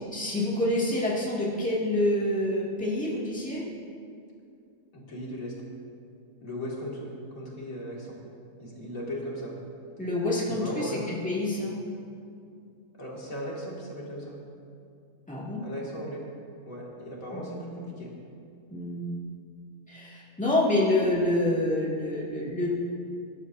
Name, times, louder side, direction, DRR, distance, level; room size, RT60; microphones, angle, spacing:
voice 1, 0.1-3.6 10.0-11.8 15.3-15.6 17.3-17.6 18.7-19.1 19.9-22.7, left 1 dB, 5° left, -6 dB, 2.2 m, -27 dB
voice 2, 4.9-5.5 6.4-8.2 8.6-9.6 10.5-11.0 12.9-14.4 15.6-16.3 16.6-18.1, equal, 70° left, -4 dB, 2.9 m, -37 dB
21.0 x 11.5 x 2.7 m, 2.4 s
omnidirectional pair, 1.5 m